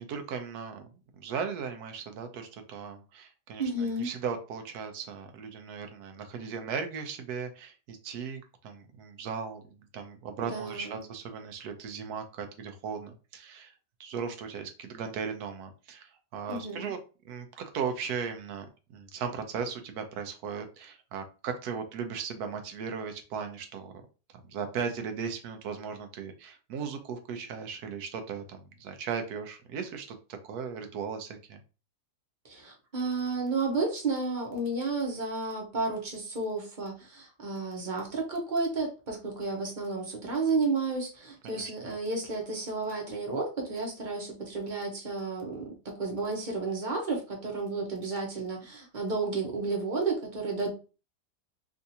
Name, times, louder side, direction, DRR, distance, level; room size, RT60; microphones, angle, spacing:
voice 1, 0.0-13.7 14.0-17.0 17.2-23.9 24.4-30.2 30.4-31.6 41.4-41.9, right 6 dB, 75° right, 6 dB, 1.1 m, -37 dB
voice 2, 3.6-4.1 10.4-11.0 16.5-16.9 32.4-45.7 46.0-50.7, right 3 dB, 35° right, 0 dB, 0.9 m, -32 dB
3.6 x 2.5 x 2.7 m, 0.33 s
omnidirectional pair, 1.7 m